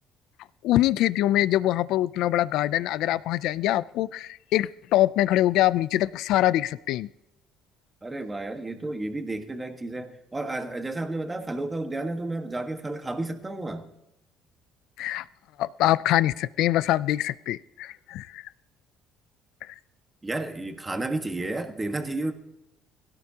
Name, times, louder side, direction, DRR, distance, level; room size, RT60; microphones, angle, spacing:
voice 1, 0.6-7.1 15.0-15.2 15.6-18.4 19.7-19.8, left 14 dB, 70° left, 0.4 m, -24 dB
voice 2, 8.0-13.8 20.2-22.3, right 2 dB, 15° right, 1.5 m, -32 dB
22.5 x 17.0 x 2.9 m
cardioid pair, 120°, 0 cm